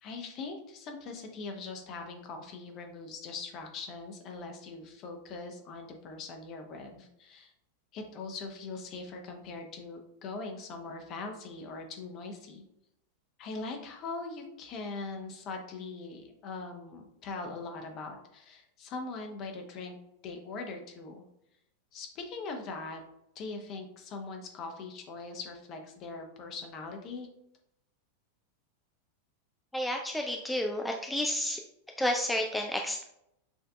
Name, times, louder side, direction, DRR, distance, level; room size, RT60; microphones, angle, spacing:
voice 1, 0.0-7.5 7.9-12.6 13.4-20.0 20.2-21.3 21.9-23.0 23.3-27.3, left 3 dB, 35° left, 3 dB, 0.8 m, -41 dB
voice 2, 29.7-31.6 32.0-33.0, left 1 dB, 5° left, 2 dB, 0.3 m, -31 dB
6.2 x 2.6 x 2.4 m, 0.80 s
figure-of-eight pair, 90°, 0 cm